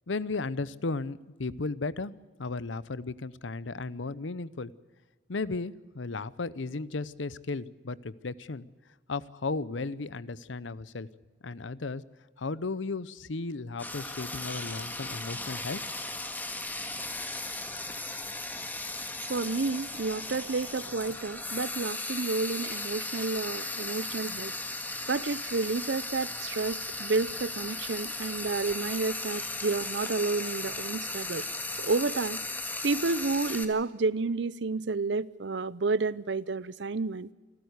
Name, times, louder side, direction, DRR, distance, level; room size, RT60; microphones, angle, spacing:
voice 1, 0.1-2.1 2.4-4.7 5.3-8.7 9.1-11.1 11.4-12.0 12.4-15.8, left 3 dB, 90° left, 0.8 m, -35 dB
Frying (food), 13.8-33.6, left 2 dB, 10° left, 1.7 m, -36 dB
voice 2, 19.3-24.5 25.1-31.4 31.7-32.4 32.8-37.3, right 3 dB, 70° right, 0.7 m, -30 dB
28.0 x 13.0 x 8.1 m
head